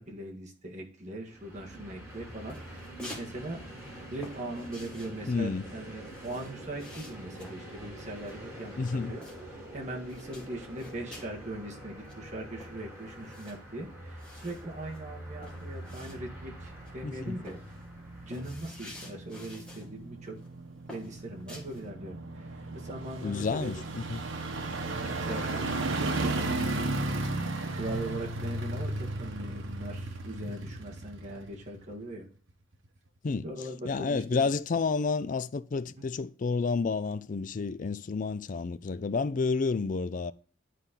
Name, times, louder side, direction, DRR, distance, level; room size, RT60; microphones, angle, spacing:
voice 1, 0.0-3.7 4.1-9.2 9.6-17.6 18.2-20.4 20.9-23.8 24.9-26.5 27.7-32.3 33.4-34.4 36.0-36.1, right 1 dB, 40° right, 1.8 m, -40 dB
Train, 1.2-19.4, right 1 dB, 15° right, 3.7 m, -46 dB
sound 1, 2.1-3.3 3.6-9.7 10.0-11.4 11.8-11.9 12.0-16.5 16.8-17.1 17.4-19.9 20.3-20.5 20.9-21.9, left 1 dB, 5° left, 2.0 m, -50 dB
voice 2, 5.3-5.6 8.8-9.1 17.0-17.4 23.2-24.2 33.2-33.4 33.8-40.3, left 4 dB, 40° left, 0.4 m, -30 dB
sound 2, 15.6-32.1 32.5-32.6, right 2 dB, 80° right, 1.1 m, -35 dB
11.0 x 4.2 x 3.8 m
head